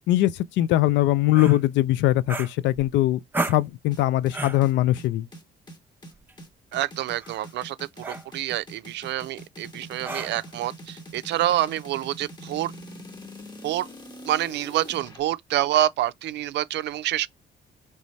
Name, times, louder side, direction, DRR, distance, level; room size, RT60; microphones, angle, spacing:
voice 1, 0.1-3.2 3.5-5.3, left 15 dB, 90° left, 0.4 m, -21 dB
sound 1, 1.3-1.6 2.3-2.9 3.3-3.7 4.3-4.7 6.1-6.3 7.2-7.5 8.0-8.3 10.0-10.5, right 2 dB, 10° right, 0.6 m, -32 dB
sound 2, 3.9-15.2, equal, 25° left, 1.1 m, -43 dB
voice 2, 6.7-12.7 13.6-13.9 14.3-17.3, right 13 dB, 75° right, 0.4 m, -27 dB
4.0 x 3.3 x 3.1 m
cardioid pair, 100°, 18 cm